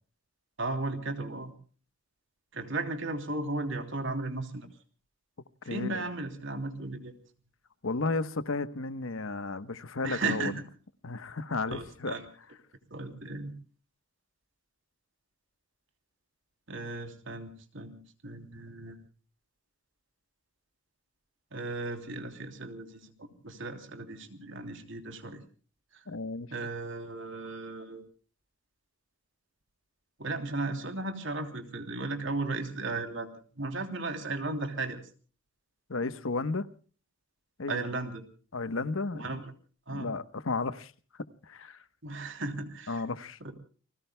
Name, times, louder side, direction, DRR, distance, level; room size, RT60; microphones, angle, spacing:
voice 1, 0.6-1.5 2.5-4.7 5.6-7.1 10.0-10.6 11.7-12.2 12.9-13.5 16.7-19.0 21.5-25.4 26.5-28.0 30.2-35.0 37.7-38.2 39.1-39.4 39.9-40.1 42.0-43.0 43.4-43.5, right 2 dB, 65° right, 3.2 m, -35 dB
voice 2, 5.6-6.0 7.8-10.5 11.0-12.1 26.1-26.5 35.9-36.7 37.6-37.9 38.5-39.4 39.9-40.9 41.5-41.8 42.9-43.4, left 3 dB, 80° left, 1.1 m, -33 dB
29.5 x 21.0 x 2.2 m
head